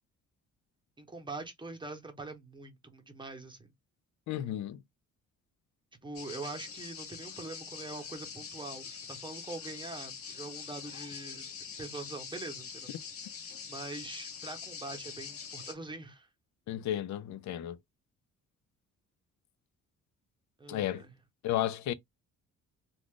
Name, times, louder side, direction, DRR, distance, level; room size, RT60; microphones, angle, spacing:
voice 1, 1.0-3.7 6.0-11.4 11.8-12.9 13.2-16.3 20.6-21.1, right 3 dB, 15° right, 1.0 m, -43 dB
voice 2, 4.3-4.8 16.7-17.8 20.7-21.0 21.4-21.9, left 12 dB, 70° left, 0.5 m, -33 dB
sound 1, 6.1-15.7, left 6 dB, 50° left, 1.0 m, -44 dB
2.4 x 2.4 x 3.6 m
cardioid pair, 90°, 30 cm